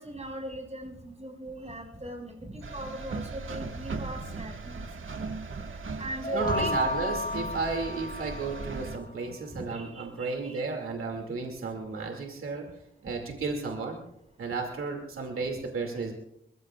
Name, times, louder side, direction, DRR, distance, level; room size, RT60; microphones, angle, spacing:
voice 1, 0.0-4.9 6.0-6.8 9.5-10.6, right 1 dB, 35° right, 2 dB, 5.3 m, -38 dB
sound 1, 2.6-9.0, right 4 dB, 75° right, 1.7 m, -38 dB
sound 2, 6.2-9.0, left 2 dB, 45° left, 0.9 m, -33 dB
voice 2, 6.3-12.7 13.0-14.0 14.4-16.1, right 4 dB, 90° right, 2 dB, 2.4 m, -33 dB
28.5 x 15.0 x 2.4 m, 0.81 s
cardioid pair, 50°, 21 cm